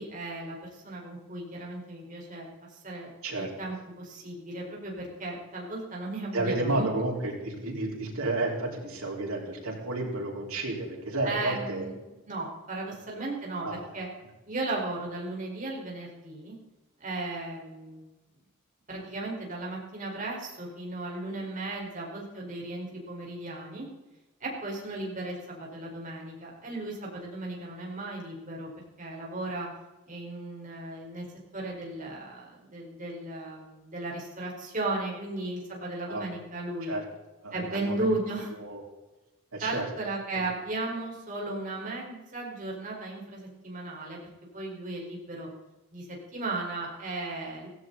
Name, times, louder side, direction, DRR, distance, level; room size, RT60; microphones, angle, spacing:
voice 1, 0.0-3.1 3.4-6.9 11.2-11.9 12.3-14.1 14.5-16.5 17.0-18.0 18.9-23.9 24.4-28.7 29.0-29.7 30.1-31.3 31.5-36.9 37.5-38.5 39.6-44.2 44.5-45.5 45.9-47.7, right 2 dB, 35° right, -2 dB, 4.8 m, -35 dB
voice 2, 6.3-11.9 13.6-13.9 25.9-26.0 36.1-36.2 36.9-37.0 37.4-38.1 38.6-38.8 39.5-39.9 40.3-40.4, right 2 dB, 85° right, -1 dB, 4.7 m, -31 dB
16.5 x 16.0 x 4.1 m, 1.1 s
head